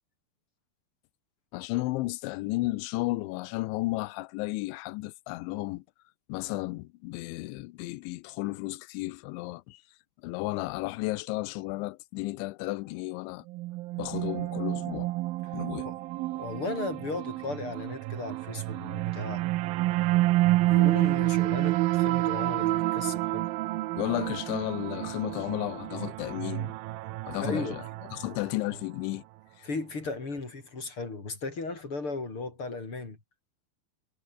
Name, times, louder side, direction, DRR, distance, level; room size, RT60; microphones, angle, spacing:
voice 1, 1.5-5.8 6.3-9.8 10.2-13.5 14.0-15.1 15.5-15.9 24.0-26.7 27.3-27.8 28.1-29.2 29.6-29.7, left 20 dB, 90° left, 3.2 m, -33 dB
sound 1, 13.5-28.8, right 18 dB, 90° right, 2.0 m, -29 dB
voice 2, 16.3-19.5 20.6-23.5 27.4-27.8 28.2-28.3 29.6-33.2, left 3 dB, 30° left, 5.4 m, -36 dB
omnidirectional pair, 5.2 m